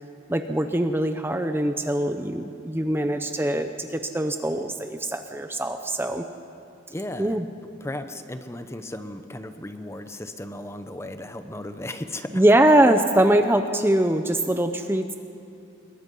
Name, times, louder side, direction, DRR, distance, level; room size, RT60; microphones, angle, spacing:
voice 1, 0.3-6.2 7.2-7.5 12.3-15.1, right 1 dB, 10° right, 7 dB, 0.7 m, -22 dB
voice 2, 6.9-7.4 7.8-12.4, left 1 dB, 15° left, 9 dB, 0.9 m, -35 dB
27.0 x 22.0 x 5.5 m, 2.7 s
head